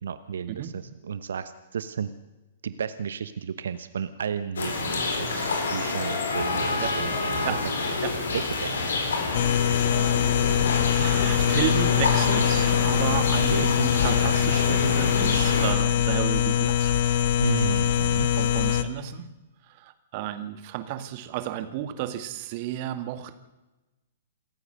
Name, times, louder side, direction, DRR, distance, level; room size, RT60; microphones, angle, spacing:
voice 1, 0.0-2.1 2.6-7.5 7.8-8.0 8.3-9.0 13.4-13.7 17.4-18.3, right 7 dB, 60° right, 13 dB, 1.0 m, -33 dB
sound 1, 4.6-15.7, left 3 dB, 65° left, 4.3 m, -27 dB
sound 2, 9.3-18.8, left 10 dB, 50° left, 1.3 m, -23 dB
voice 2, 9.8-10.6 10.9-16.9 18.4-19.3 19.7-23.3, right 12 dB, 40° right, 11 dB, 2.0 m, -33 dB
27.5 x 14.5 x 6.6 m, 1.1 s
figure-of-eight pair, 110°, 0 cm